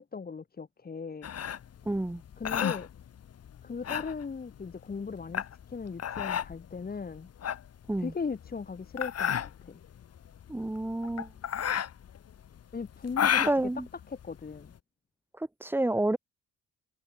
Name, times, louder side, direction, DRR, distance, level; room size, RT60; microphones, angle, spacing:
voice 1, 0.0-1.3 2.4-2.9 3.6-5.4 5.7-7.3 8.0-9.8 12.7-13.5 14.1-14.7, left 5 dB, 30° left, 2.1 m, -38 dB
sound 1, 1.2-14.8, left 9 dB, 55° left, 2.0 m, -33 dB
voice 2, 1.9-2.2 7.9-8.1 10.5-11.3 13.4-13.8 15.4-16.2, right 1 dB, 5° right, 0.9 m, -29 dB
open air
cardioid pair, 90°, 30 cm